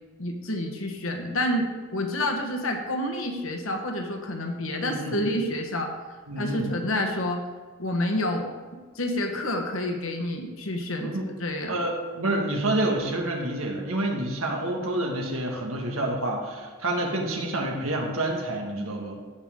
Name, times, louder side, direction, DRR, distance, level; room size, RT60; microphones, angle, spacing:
voice 1, 0.2-5.9 6.4-7.4 7.8-11.8, left 1 dB, 80° left, 3 dB, 1.3 m, -29 dB
voice 2, 4.8-5.2 6.3-6.7 11.0-11.2 11.7-19.2, right 1 dB, 90° right, 1 dB, 1.8 m, -28 dB
15.0 x 5.6 x 3.7 m, 1.5 s
head